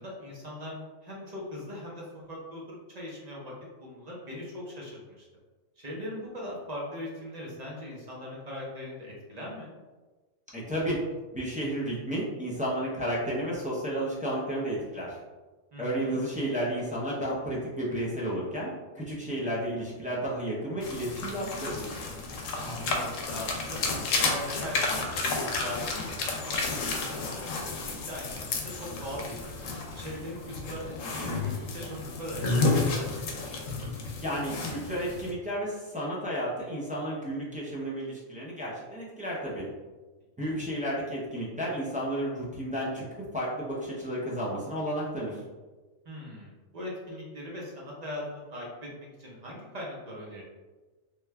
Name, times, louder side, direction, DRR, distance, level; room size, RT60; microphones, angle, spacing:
voice 1, 0.0-3.5 3.8-5.3 5.8-9.7 15.7-16.2 19.3-19.5 22.6-29.5 29.9-33.3 40.4-40.6 46.0-50.4, left 1 dB, 40° right, -4 dB, 0.7 m, -40 dB
voice 2, 10.5-11.0 11.3-15.2 15.8-21.9 34.2-39.7 40.4-43.0 43.3-45.4, right 1 dB, 10° right, -7 dB, 0.4 m, -32 dB
sound 1, 20.8-35.3, left 3 dB, 75° left, 1.0 m, -31 dB
3.1 x 2.3 x 3.2 m, 1.2 s
omnidirectional pair, 1.4 m